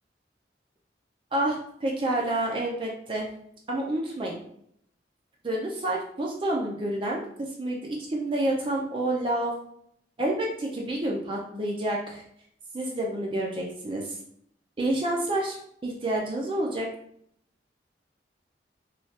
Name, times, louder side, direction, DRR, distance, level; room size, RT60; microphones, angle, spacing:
voice 1, 1.8-3.3 3.7-4.4 5.4-7.8 8.1-9.5 10.2-12.2 12.7-14.2 14.8-15.6 15.8-16.9, right 1 dB, 30° right, -2 dB, 0.4 m, -28 dB
3.2 x 2.3 x 2.7 m, 0.69 s
head